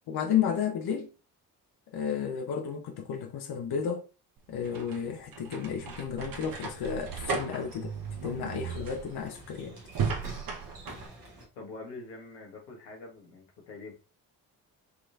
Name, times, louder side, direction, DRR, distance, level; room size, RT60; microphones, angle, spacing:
voice 1, 0.1-1.1 1.9-4.0 4.5-7.9 8.2-9.8, left 7 dB, 55° left, 0.9 m, -32 dB
sound 1, 4.4-11.1, right 5 dB, 45° right, 1.1 m, -36 dB
sound 2, 5.9-11.4, right 1 dB, 85° right, 1.4 m, -51 dB
voice 2, 11.5-13.9, left 3 dB, 85° left, 1.3 m, -45 dB
4.9 x 3.0 x 2.5 m
hypercardioid pair, 45°, 47 cm